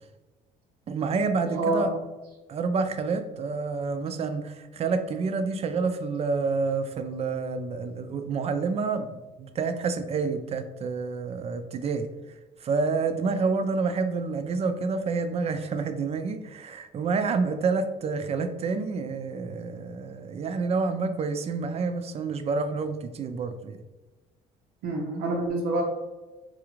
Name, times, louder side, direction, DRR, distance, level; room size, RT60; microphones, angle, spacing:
voice 1, 0.9-1.9 2.5-9.1 9.4-12.1 12.6-23.8, right 4 dB, 40° right, 8 dB, 0.4 m, -28 dB
voice 2, 1.5-2.0 24.8-25.8, right 2 dB, 90° right, -4 dB, 0.6 m, -27 dB
4.0 x 2.4 x 3.0 m, 1.1 s
cardioid pair, 110°, 17 cm